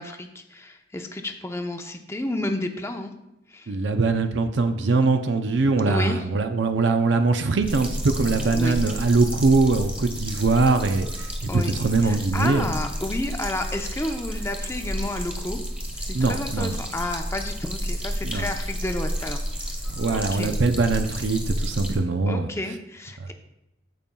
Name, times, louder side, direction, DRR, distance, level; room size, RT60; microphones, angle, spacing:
voice 1, 0.0-3.1 3.5-3.7 5.9-6.2 8.5-8.8 11.5-11.7 12.0-15.6 15.9-19.8 20.1-20.5 22.3-23.3, left 1 dB, 15° left, 5 dB, 0.6 m, -31 dB
voice 2, 3.7-12.7 16.1-16.8 18.2-18.5 19.9-22.5 23.2-23.3, right 3 dB, 65° right, 7 dB, 0.5 m, -22 dB
sound 1, 7.6-22.0, equal, 5° right, 1.3 m, -31 dB
16.0 x 5.4 x 2.3 m, 0.92 s
head